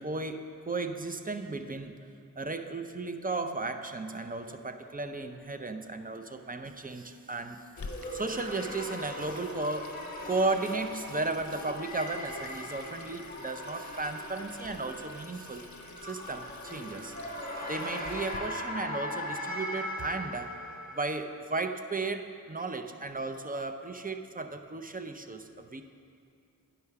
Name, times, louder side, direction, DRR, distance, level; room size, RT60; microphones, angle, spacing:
voice 1, 0.0-2.1 2.4-15.7 16.0-17.1 17.6-20.6 20.9-25.8, right 3 dB, 25° right, 7 dB, 0.5 m, -35 dB
Water tap faucet / Sink (filling or washing), 7.8-18.4, left 3 dB, 55° left, 0.6 m, -47 dB
sound 1, 7.8-21.1, left 1 dB, 25° left, 1.2 m, -40 dB
9.7 x 5.7 x 4.7 m, 2.5 s
wide cardioid pair, 40°, 36 cm